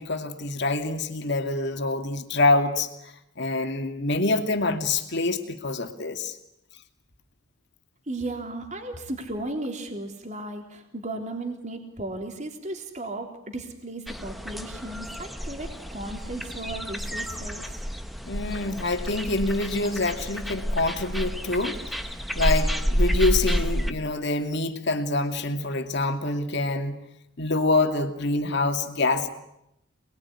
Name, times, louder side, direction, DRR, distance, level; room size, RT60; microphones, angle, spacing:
voice 1, 0.0-3.1 3.4-6.4 18.3-22.0 22.3-27.0 27.4-29.3, left 2 dB, 55° left, 6 dB, 2.5 m, -26 dB
voice 2, 8.1-17.8, right 2 dB, 35° right, 3 dB, 3.7 m, -35 dB
sound 1, 14.1-23.9, equal, ahead, 1.3 m, -29 dB
28.0 x 21.0 x 9.9 m, 0.82 s
head